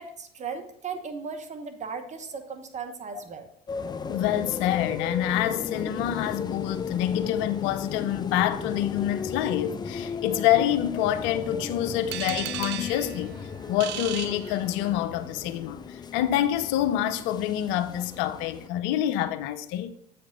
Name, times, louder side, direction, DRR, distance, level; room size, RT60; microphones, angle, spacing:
voice 1, 0.0-3.5, right 5 dB, 35° right, 1.1 m, -37 dB
sound 1, 3.7-18.7, left 5 dB, 20° left, 0.4 m, -36 dB
voice 2, 4.1-13.3 13.7-19.9, left 11 dB, 65° left, 0.6 m, -27 dB
sound 2, 12.1-15.2, right 15 dB, 60° right, 0.4 m, -36 dB
7.9 x 5.1 x 4.0 m
hypercardioid pair, 70°, 21 cm